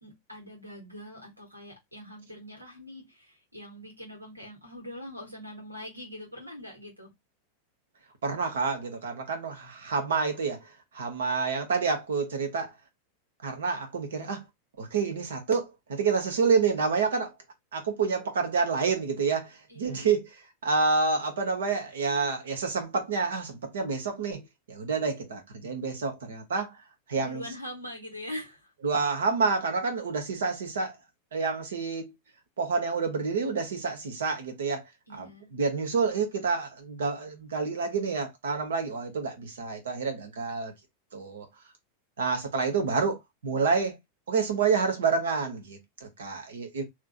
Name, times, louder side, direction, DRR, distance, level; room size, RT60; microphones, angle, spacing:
voice 1, 0.0-7.1 19.7-20.1 27.1-28.7 35.1-35.5, left 1 dB, 85° right, 1.8 m, -43 dB
voice 2, 8.2-10.6 10.9-12.7 13.4-14.4 14.8-17.3 17.7-20.3 20.6-24.4 24.7-26.7 27.1-27.4 28.8-30.9 31.3-32.1 32.6-34.8 35.1-40.7 41.1-41.5 42.2-44.0 44.3-46.8, right 5 dB, 65° right, 1.2 m, -28 dB
3.5 x 3.1 x 2.5 m
figure-of-eight pair, 90°, 0 cm